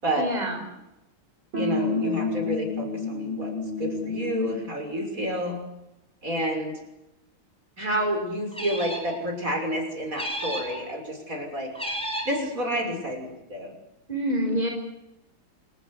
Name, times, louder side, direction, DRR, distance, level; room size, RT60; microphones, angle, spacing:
voice 1, 0.2-0.6 14.1-14.7, equal, 20° right, 2 dB, 5.2 m, -26 dB
voice 2, 1.5-3.5 3.8-5.6 6.2-6.7 7.8-13.7, equal, 40° right, 3 dB, 6.7 m, -29 dB
sound 1, 1.5-4.7, left 2 dB, 80° right, 6.8 m, -29 dB
sound 2, 8.5-9.2 10.1-10.8 11.7-12.4, equal, ahead, 7.3 m, -32 dB
29.5 x 14.5 x 9.9 m, 0.90 s
omnidirectional pair, 2.3 m